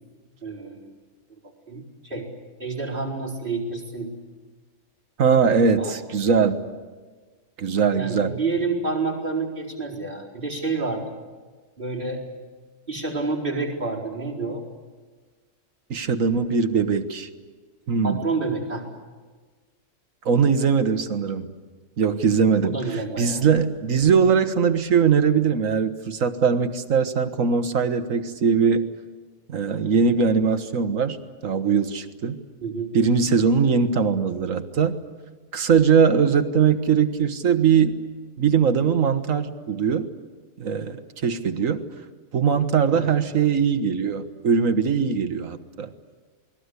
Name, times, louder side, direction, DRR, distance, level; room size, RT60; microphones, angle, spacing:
voice 1, 0.4-1.0 1.7-2.3 2.6-4.1 5.7-5.9 7.9-11.1 11.8-12.2 12.9-14.6 18.0-18.8 22.6-23.4 32.6-32.9 42.9-43.1, right 3 dB, 40° right, -4 dB, 4.8 m, -29 dB
voice 2, 5.2-6.6 7.6-8.4 15.9-17.3 17.9-18.2 20.3-21.5 22.0-28.9 29.5-31.2 31.4-32.4 32.9-35.0 35.5-38.0 38.4-40.1 40.6-41.8 42.3-45.9, right 6 dB, 90° right, 9 dB, 1.7 m, -21 dB
28.5 x 20.5 x 8.3 m, 1.4 s
omnidirectional pair, 1.3 m